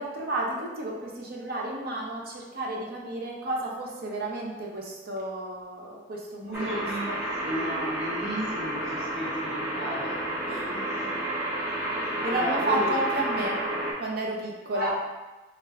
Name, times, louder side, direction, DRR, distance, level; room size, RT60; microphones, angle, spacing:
voice 1, 0.0-7.2 10.5-10.7 12.0-13.6 14.0-14.9, right 2 dB, 55° right, -2 dB, 0.6 m, -32 dB
voice 2, 6.4-11.4 12.1-13.0 14.7-14.9, equal, 90° right, -8 dB, 1.3 m, -34 dB
sound 1, 6.5-13.9, right 1 dB, 10° right, 0.6 m, -31 dB
3.3 x 2.5 x 3.3 m, 1.2 s
head